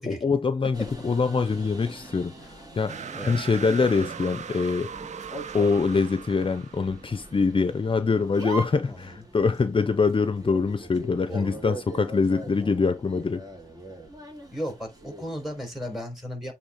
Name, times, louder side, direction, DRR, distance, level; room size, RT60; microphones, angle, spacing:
voice 1, 0.0-3.0 3.2-4.9 5.5-13.4, left 4 dB, 45° left, 0.6 m, -24 dB
sound 1, 0.7-16.0, right 1 dB, 35° right, 2.7 m, -42 dB
sound 2, 2.9-8.4 8.9-9.0 12.9-14.0, right 4 dB, 55° right, 1.2 m, -48 dB
sound 3, 2.9-7.3, right 7 dB, 80° right, 0.4 m, -39 dB
voice 2, 8.8-9.2 11.3-11.6 14.5-16.5, equal, ahead, 4.2 m, -35 dB
8.1 x 3.6 x 3.7 m
wide cardioid pair, 75°, 12 cm